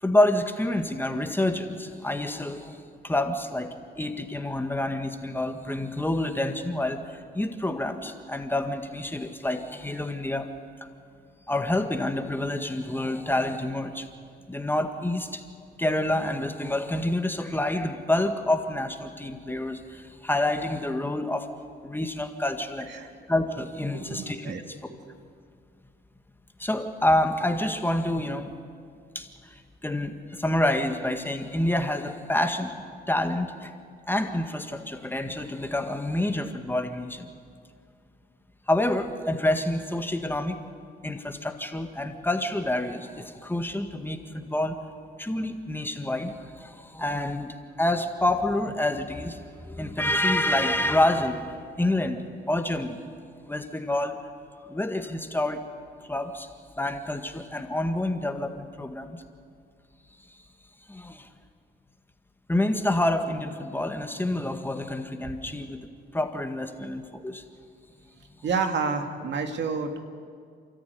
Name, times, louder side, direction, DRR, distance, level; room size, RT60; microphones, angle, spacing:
voice 1, 0.0-10.5 10.8-10.9 11.5-14.1 14.5-15.4 15.8-21.5 21.8-22.9 23.3-24.9 26.6-28.5 29.1-33.7 34.1-37.3 38.7-40.6 41.0-44.8 45.2-53.0 53.4-54.2 54.6-55.6 56.1-56.5 56.8-59.2 60.9-61.3 62.5-65.9 66.1-67.4, left 1 dB, 10° left, 6 dB, 1.7 m, -28 dB
voice 2, 23.9-24.6 24.9-25.0 66.8-66.9 68.4-70.0, right 5 dB, 65° right, 6 dB, 2.2 m, -29 dB
29.5 x 14.0 x 9.5 m, 2.2 s
cardioid pair, 90°, 20 cm